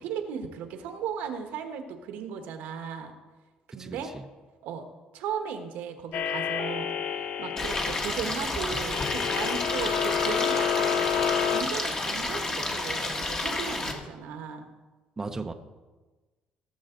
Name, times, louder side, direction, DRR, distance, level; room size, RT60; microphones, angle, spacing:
voice 1, 0.0-3.1 3.7-4.1 4.6-4.8 5.1-11.0 11.4-14.7, right 7 dB, 90° right, 6 dB, 1.4 m, -36 dB
voice 2, 3.8-4.2 15.2-15.5, right 3 dB, 15° right, 6 dB, 0.6 m, -36 dB
sound 1, 6.1-11.6, left 8 dB, 60° left, 0.8 m, -29 dB
Stream, 7.6-13.9, left 2 dB, 25° left, 1.3 m, -30 dB
18.0 x 7.2 x 3.9 m, 1.3 s
cardioid pair, 135°, 3 cm